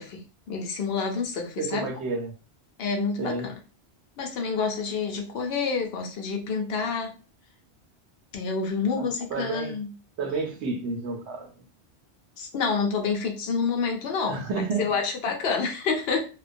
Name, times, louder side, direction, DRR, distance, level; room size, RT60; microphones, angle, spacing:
voice 1, 0.0-1.9 2.8-3.5 4.2-7.1 8.3-9.9 12.4-16.2, left 5 dB, 70° left, 2 dB, 0.8 m, -28 dB
voice 2, 1.6-2.3 3.2-3.5 9.0-9.8 10.2-11.5 14.3-14.8, right 3 dB, 80° right, 4 dB, 0.9 m, -30 dB
2.3 x 2.2 x 2.5 m, 0.35 s
omnidirectional pair, 1.1 m